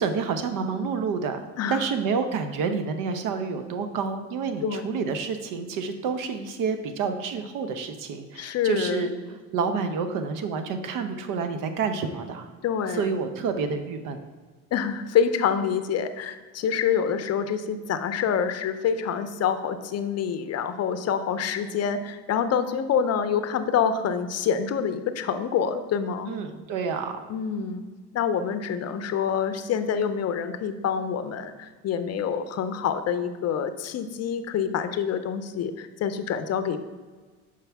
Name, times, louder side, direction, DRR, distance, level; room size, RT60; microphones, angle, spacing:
voice 1, 0.0-1.4 1.7-9.1 9.5-12.5 12.9-14.2 26.3-27.2, right 5 dB, 65° right, 8 dB, 0.8 m, -28 dB
voice 2, 4.6-5.1 8.3-9.1 12.6-13.1 14.7-26.3 27.3-27.8 28.1-36.8, left 7 dB, 45° left, 11 dB, 0.6 m, -26 dB
6.9 x 4.9 x 3.4 m, 1.4 s
supercardioid pair, 80°, 35 cm